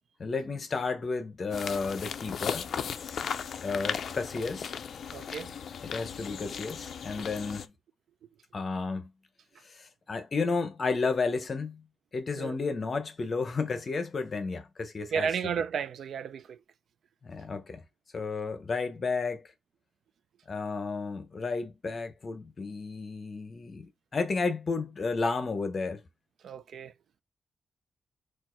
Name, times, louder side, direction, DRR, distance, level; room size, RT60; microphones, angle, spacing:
voice 1, 0.2-2.7 3.6-4.7 5.8-7.7 8.5-9.1 9.7-11.8 12.1-15.3 17.2-17.8 18.1-19.5 20.5-26.0, left 4 dB, 35° left, 0.8 m, -32 dB
sound 1, 1.5-7.7, left 7 dB, 65° left, 0.4 m, -36 dB
voice 2, 5.1-5.5 12.4-12.6 15.1-16.6 26.4-26.9, right 7 dB, 75° right, 0.3 m, -33 dB
4.3 x 2.5 x 4.3 m
wide cardioid pair, 175°, 0 cm